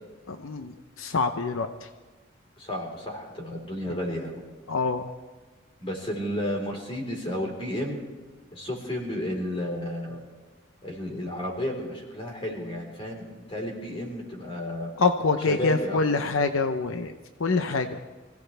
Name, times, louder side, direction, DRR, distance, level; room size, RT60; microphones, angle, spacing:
voice 1, 0.3-1.9 3.9-4.0 4.7-5.1 15.0-17.1 17.4-18.0, left 4 dB, 80° left, 7 dB, 0.8 m, -26 dB
voice 2, 2.6-4.4 5.8-8.0 8.5-10.2 10.8-14.9 15.5-16.0, equal, 25° left, 0 dB, 4.1 m, -32 dB
25.0 x 16.5 x 3.4 m, 1.3 s
head